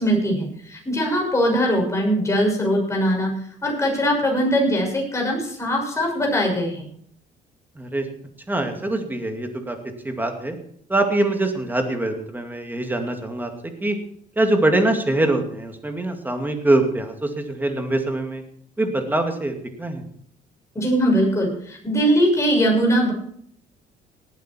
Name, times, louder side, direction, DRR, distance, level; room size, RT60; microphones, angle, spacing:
voice 1, 0.0-6.8 20.7-23.1, equal, 15° left, -1 dB, 6.3 m, -21 dB
voice 2, 7.8-8.1 8.5-9.8 10.0-10.6 10.9-13.5 13.8-14.0 14.4-18.4 18.8-20.0, right 2 dB, 10° right, 5 dB, 2.4 m, -23 dB
18.5 x 9.3 x 4.5 m, 0.63 s
cardioid pair, 110°, 17 cm